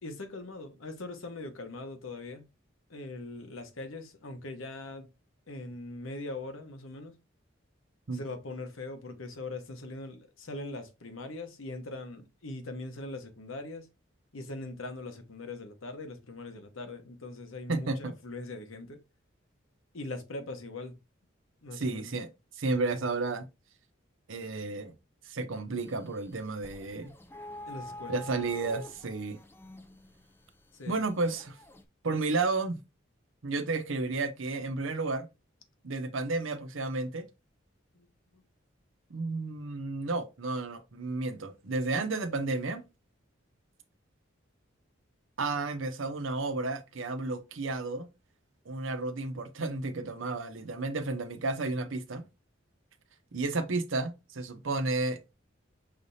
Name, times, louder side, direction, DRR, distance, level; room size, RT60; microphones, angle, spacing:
voice 1, 0.0-2.5 2.9-5.1 5.5-7.1 8.1-13.9 14.3-19.0 19.9-21.0 21.6-22.1 27.6-28.2 30.7-31.0 37.9-38.1 38.3-38.4, left 2 dB, 85° left, 1.0 m, -41 dB
voice 2, 17.7-18.1 21.7-22.3 22.6-23.5 24.3-24.9 25.3-27.1 28.1-29.4 30.9-31.6 32.0-32.8 33.4-35.3 35.8-37.2 39.1-42.8 45.4-48.1 48.7-52.2 53.3-55.2, right 3 dB, 80° right, 0.8 m, -32 dB
sound 1, 25.8-31.8, left 1 dB, 10° left, 0.4 m, -48 dB
5.9 x 3.3 x 2.7 m
head